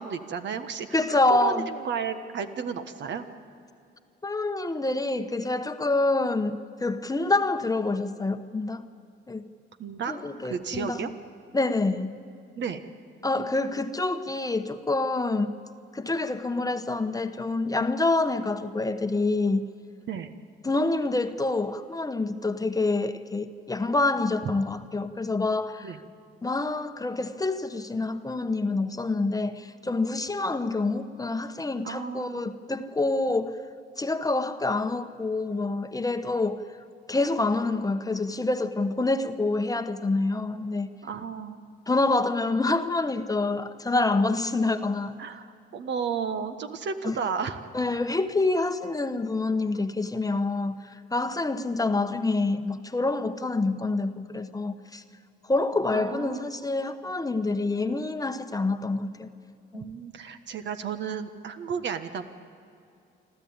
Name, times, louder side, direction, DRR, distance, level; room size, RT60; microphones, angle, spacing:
voice 1, 0.0-3.2 9.8-11.1 12.6-12.8 20.1-20.3 25.8-26.0 31.8-32.6 41.0-41.6 45.2-47.6 55.9-56.5 59.7-62.3, right 6 dB, 65° right, 1.4 m, -33 dB
voice 2, 0.9-1.7 4.2-8.9 9.3-9.4 10.1-11.0 11.5-12.2 13.2-15.6 15.9-19.7 20.6-25.9 26.4-33.6 34.0-36.6 37.1-40.9 41.9-45.2 47.0-47.2 47.7-55.0 55.5-59.3 59.7-59.9, left 2 dB, 20° left, 1.0 m, -27 dB
26.5 x 13.5 x 8.9 m
cardioid pair, 90°, 20 cm